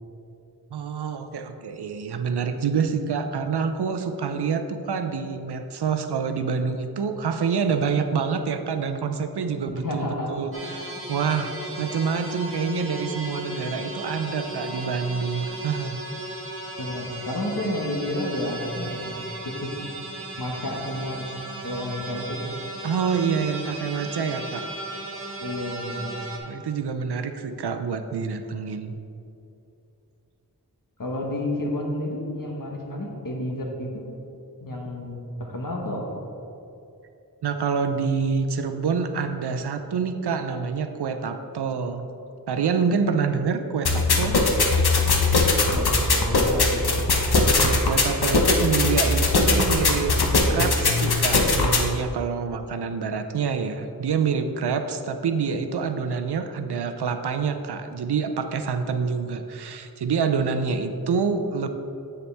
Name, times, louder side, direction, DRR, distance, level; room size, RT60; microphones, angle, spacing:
voice 1, 0.7-16.0 22.8-24.7 26.4-28.9 37.4-42.1 42.5-44.4 47.6-50.1 50.5-61.7, right 5 dB, 90° right, 8 dB, 0.6 m, -27 dB
voice 2, 9.8-10.3 16.8-19.2 19.4-19.8 20.4-21.2 21.6-22.4 25.4-26.2 31.0-34.1 34.6-36.2 45.7-46.8, left 1 dB, 55° left, -1 dB, 1.3 m, -30 dB
sound 1, 10.5-26.4, right 1 dB, 35° right, 1.4 m, -35 dB
sound 2, 43.8-51.8, left 3 dB, 75° left, 0.9 m, -20 dB
7.8 x 6.9 x 3.4 m, 2.7 s
wide cardioid pair, 70°, 39 cm